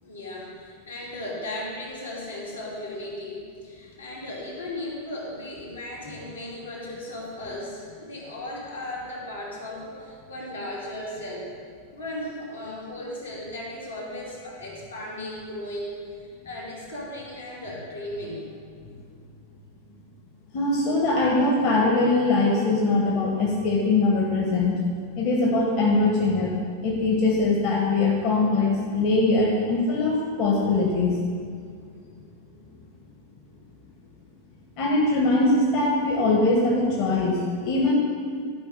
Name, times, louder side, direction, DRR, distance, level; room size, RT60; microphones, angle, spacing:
voice 1, 0.0-11.5 11.9-18.5 19.8-19.9, left 1 dB, 80° left, -5 dB, 2.5 m, -36 dB
voice 2, 20.5-24.7 25.1-26.5 26.8-31.2 34.8-37.9, left 2 dB, 45° left, -2 dB, 1.3 m, -22 dB
12.0 x 5.1 x 5.3 m, 2.2 s
figure-of-eight pair, 90°, 0 cm